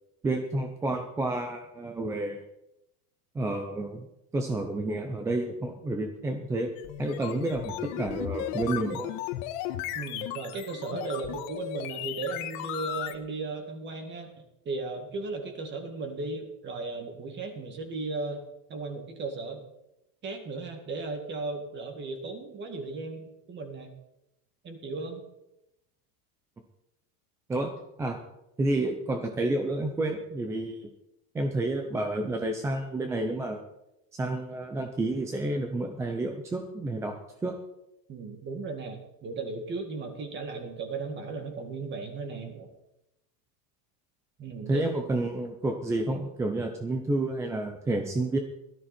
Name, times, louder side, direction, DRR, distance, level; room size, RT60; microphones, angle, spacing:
voice 1, 0.2-2.4 3.3-4.1 4.3-6.7 7.0-9.1 27.5-27.7 28.0-28.2 28.6-30.9 31.3-33.6 34.1-37.2 37.4-37.6 44.7-48.4, right 2 dB, 5° right, 4 dB, 0.4 m, -30 dB
sound 1, 6.8-13.1, left 12 dB, 55° left, 1.4 m, -35 dB
voice 2, 9.9-14.3 14.7-18.4 18.7-19.6 20.2-23.9 24.6-25.2 38.1-42.7 44.4-44.9, right 3 dB, 25° right, 5 dB, 2.1 m, -36 dB
17.0 x 13.0 x 4.3 m, 0.88 s
supercardioid pair, 165°, 47 cm